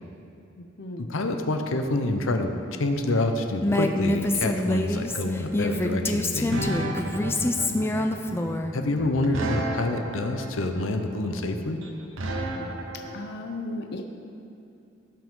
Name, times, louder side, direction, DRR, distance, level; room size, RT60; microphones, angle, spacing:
voice 1, 0.6-1.1 7.7-8.1 13.1-14.0, left 2 dB, 55° left, 4 dB, 0.6 m, -36 dB
voice 2, 1.1-6.9 8.7-11.8, left 2 dB, 85° left, 5 dB, 0.8 m, -27 dB
Female speech woman speaking, 3.6-8.7, left 1 dB, 10° left, 0.4 m, -26 dB
sound 1, 4.9-13.1, right 1 dB, 80° right, 1.0 m, -33 dB
16.5 x 6.1 x 3.7 m, 2.6 s
head